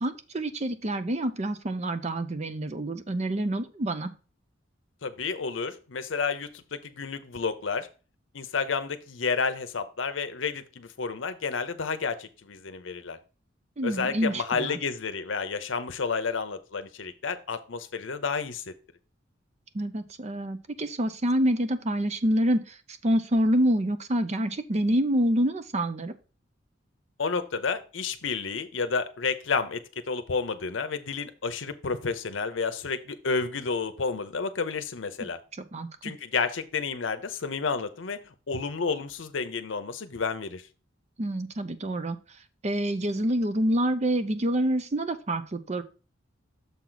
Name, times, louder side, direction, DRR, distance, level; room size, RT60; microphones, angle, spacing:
voice 1, 0.0-4.1 13.8-14.8 19.7-22.8 23.0-26.1 35.7-36.1 41.2-42.2 42.6-45.8, right 1 dB, 35° right, 10 dB, 0.6 m, -27 dB
voice 2, 5.0-7.9 8.3-13.2 13.8-18.7 27.2-35.4 36.0-40.6, left 5 dB, 80° left, 9 dB, 0.7 m, -31 dB
7.0 x 4.5 x 3.9 m, 0.34 s
head